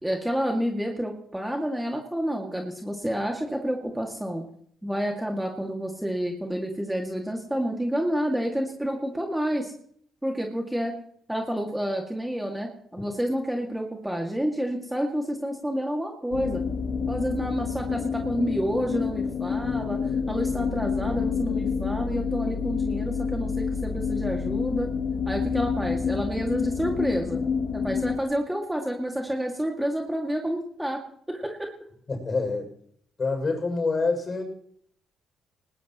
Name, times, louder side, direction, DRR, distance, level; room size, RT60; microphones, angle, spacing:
voice 1, 0.0-4.4 4.8-9.7 10.2-10.9 11.3-16.6 17.1-20.0 20.3-24.9 25.3-27.4 27.7-31.0 31.3-31.7, equal, 5° right, 1 dB, 2.3 m, -29 dB
sound 1, 16.3-28.2, left 5 dB, 60° left, 1.5 m, -28 dB
voice 2, 32.1-32.7 33.2-34.4, left 3 dB, 35° left, 3 dB, 6.8 m, -26 dB
19.5 x 19.5 x 3.1 m, 0.66 s
cardioid pair, 90°, 0 cm